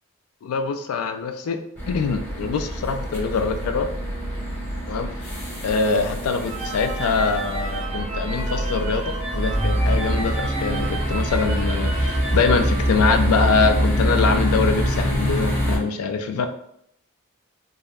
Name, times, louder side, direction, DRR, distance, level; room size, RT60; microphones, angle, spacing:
voice 1, 0.4-1.6 1.9-3.9 4.9-5.1 5.6-16.5, left 4 dB, 85° left, 7 dB, 0.3 m, -24 dB
sound 1, 1.8-15.8, equal, 10° left, 0.7 m, -25 dB
sound 2, 6.4-13.4, right 3 dB, 30° right, 0.4 m, -33 dB
2.3 x 2.0 x 3.3 m, 0.73 s
head